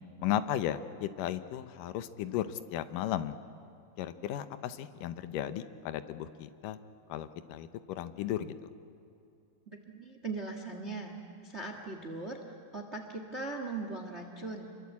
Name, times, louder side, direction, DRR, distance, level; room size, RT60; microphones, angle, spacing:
voice 1, 0.2-3.3 4.0-6.8 7.1-8.6, left 11 dB, 85° left, 12 dB, 2.5 m, -35 dB
voice 2, 9.7-11.2 11.4-14.7, right 3 dB, 30° right, 4 dB, 1.4 m, -40 dB
28.0 x 23.0 x 8.4 m, 2.7 s
omnidirectional pair, 3.7 m